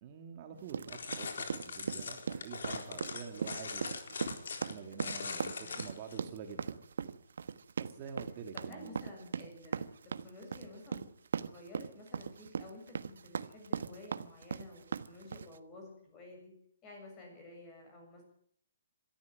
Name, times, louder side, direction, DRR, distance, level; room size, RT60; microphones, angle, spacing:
voice 1, 0.0-4.0 4.6-6.8 7.8-9.0, right 6 dB, 30° right, 4 dB, 2.1 m, -47 dB
sound 1, 0.7-15.6, right 6 dB, 75° right, 1.2 m, -39 dB
sound 2, 0.9-6.2, left 5 dB, 75° left, 4.1 m, -41 dB
voice 2, 5.2-5.8 7.9-8.2 8.5-11.1 11.5-16.5 16.8-18.3, left 2 dB, 15° left, 2 dB, 7.3 m, -52 dB
22.0 x 14.0 x 9.1 m, 0.64 s
hypercardioid pair, 175°, 0 cm